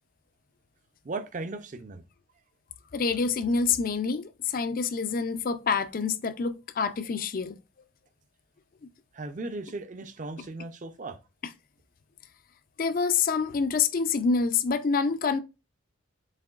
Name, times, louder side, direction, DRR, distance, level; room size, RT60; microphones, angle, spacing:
voice 1, 1.0-2.0 9.1-11.2, right 3 dB, 40° right, 0.5 m, -37 dB
voice 2, 2.9-7.6 12.8-15.4, left 5 dB, 45° left, 0.4 m, -27 dB
7.4 x 2.9 x 2.3 m
head